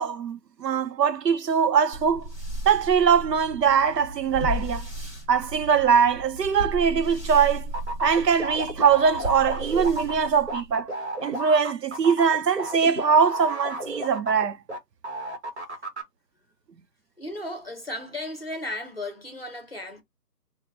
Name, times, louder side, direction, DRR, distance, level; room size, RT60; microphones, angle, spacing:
voice 1, 0.0-2.3 2.7-4.8 5.3-7.7 8.0-10.9 11.2-14.6, right 6 dB, 75° right, 0.7 m, -22 dB
sound 1, 1.9-10.8, equal, 25° right, 1.3 m, -35 dB
sound 2, 7.7-14.8 15.0-16.0, right 1 dB, 45° right, 1.0 m, -32 dB
voice 2, 15.3-15.8 17.2-20.0, left 1 dB, 35° left, 0.7 m, -36 dB
4.2 x 2.2 x 2.6 m
hypercardioid pair, 175°, 49 cm